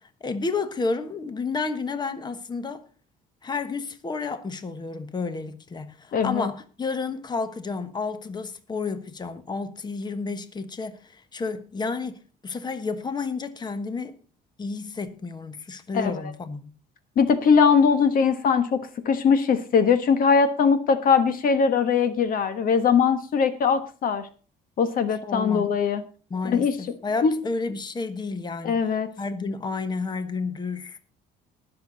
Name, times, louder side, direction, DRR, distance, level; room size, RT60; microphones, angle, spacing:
voice 1, 0.0-2.8 3.4-14.2 14.6-16.7 25.2-25.7 26.3-28.8 29.2-31.0, left 4 dB, 25° left, 1.2 m, -31 dB
voice 2, 6.1-6.5 15.9-16.1 17.2-24.3 24.8-26.0 26.4-26.8 27.2-27.3 28.6-29.1, left 6 dB, 55° left, 1.3 m, -21 dB
19.5 x 6.9 x 4.0 m
cardioid pair, 110°, 17 cm